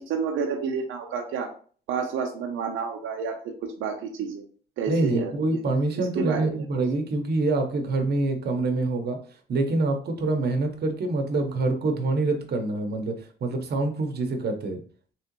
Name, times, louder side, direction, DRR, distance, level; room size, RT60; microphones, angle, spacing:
voice 1, 0.0-1.5 1.9-4.4 4.8-5.7 6.0-6.7, right 5 dB, 85° right, 2 dB, 0.6 m, -30 dB
voice 2, 4.9-9.2 9.5-13.1 13.4-14.8, right 2 dB, 55° right, 5 dB, 0.9 m, -25 dB
3.7 x 3.1 x 3.0 m, 0.44 s
cardioid pair, 90°, 20 cm